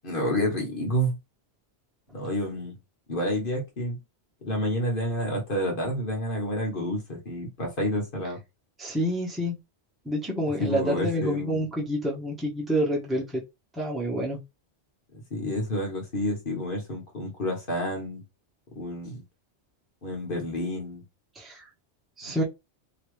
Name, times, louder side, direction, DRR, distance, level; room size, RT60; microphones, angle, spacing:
voice 1, 0.0-1.2 2.1-2.8 3.1-4.0 4.4-8.4 10.6-11.6 15.3-18.2 18.8-19.2 20.0-21.0, equal, 50° left, 1.5 m, -29 dB
voice 2, 8.8-9.6 10.0-13.4 13.7-14.4 21.3-21.6 22.2-22.4, equal, ahead, 1.0 m, -28 dB
3.0 x 2.9 x 3.2 m
omnidirectional pair, 1.2 m